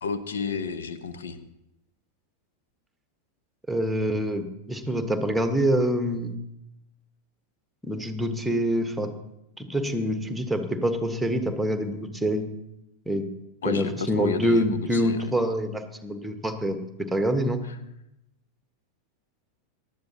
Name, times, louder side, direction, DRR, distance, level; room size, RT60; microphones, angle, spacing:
voice 1, 0.0-1.4 13.6-15.3, left 5 dB, 65° left, 12 dB, 0.8 m, -31 dB
voice 2, 3.7-6.4 7.8-9.1 9.6-12.4 13.1-13.3 13.6-16.8 17.1-17.6, equal, 5° right, 8 dB, 1.2 m, -26 dB
18.5 x 12.5 x 2.8 m, 0.86 s
figure-of-eight pair, 90°, 0 cm